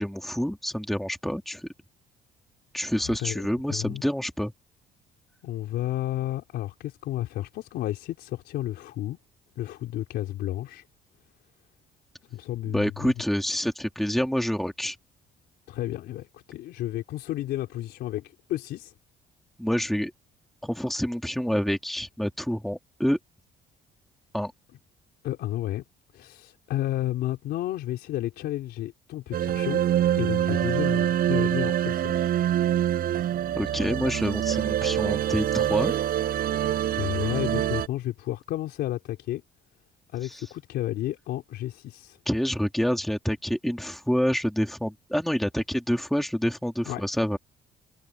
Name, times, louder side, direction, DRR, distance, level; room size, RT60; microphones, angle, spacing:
voice 1, 0.0-1.7 2.7-4.5 12.7-15.0 19.6-20.1 20.6-23.2 24.3-24.5 33.6-35.9 40.2-40.5 42.3-47.4, equal, ahead, 2.8 m, -27 dB
voice 2, 2.9-3.4 3.7-4.0 5.4-9.2 9.6-10.8 12.3-13.1 15.7-18.9 25.2-25.8 26.1-29.8 30.2-32.3 37.0-39.4 40.1-42.2 46.9-47.0, left 14 dB, 75° left, 4.1 m, -32 dB
sound 1, 29.3-37.9, right 11 dB, 60° right, 5.1 m, -25 dB
cardioid pair, 110°, 17 cm